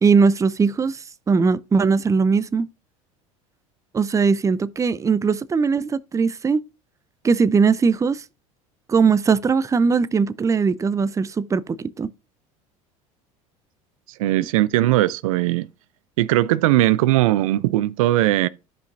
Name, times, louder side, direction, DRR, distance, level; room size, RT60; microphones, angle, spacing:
voice 1, 0.0-2.7 3.9-6.6 7.2-8.2 8.9-12.1, right 5 dB, 20° right, 0.5 m, -20 dB
voice 2, 14.2-15.7 16.2-18.5, right 15 dB, 80° right, 0.4 m, -19 dB
14.0 x 5.1 x 2.6 m
hypercardioid pair, 80°, 17 cm